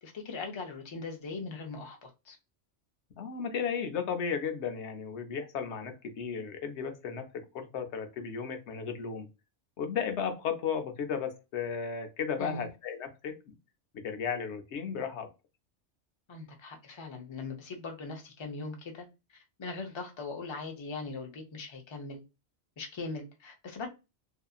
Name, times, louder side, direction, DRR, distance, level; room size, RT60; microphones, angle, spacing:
voice 1, 0.0-2.4 12.4-12.7 16.3-22.2 22.8-23.9, left 3 dB, 40° left, 0.4 m, -40 dB
voice 2, 3.2-9.3 9.8-13.5 13.9-15.3, left 6 dB, 75° left, 0.8 m, -34 dB
2.7 x 2.4 x 2.3 m
omnidirectional pair, 1.2 m